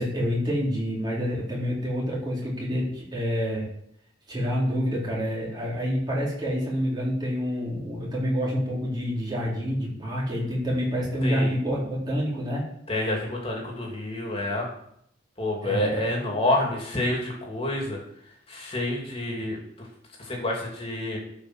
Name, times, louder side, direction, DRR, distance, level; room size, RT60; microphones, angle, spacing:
voice 1, 0.0-3.7 4.3-12.7 15.6-16.0, equal, 25° right, -5 dB, 3.9 m, -27 dB
voice 2, 11.2-11.5 12.9-14.7 15.4-18.0 18.5-19.9 20.2-21.2, left 1 dB, 30° left, -1 dB, 2.7 m, -28 dB
12.0 x 5.6 x 6.3 m, 0.71 s
head